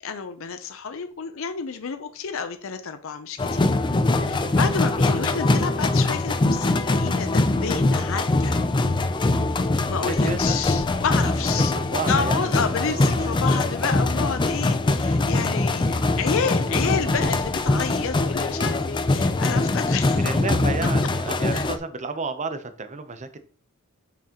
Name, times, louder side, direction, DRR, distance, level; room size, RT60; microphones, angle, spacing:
voice 1, 0.0-3.6 4.2-8.6 9.9-11.7 12.1-20.3 21.5-21.7, left 6 dB, 65° left, 0.6 m, -30 dB
sound 1, 3.4-21.8, left 2 dB, 20° left, 0.4 m, -22 dB
voice 2, 10.0-10.7 11.7-12.5 12.8-13.3 20.2-23.4, right 3 dB, 35° right, 0.7 m, -32 dB
7.0 x 6.0 x 2.9 m
head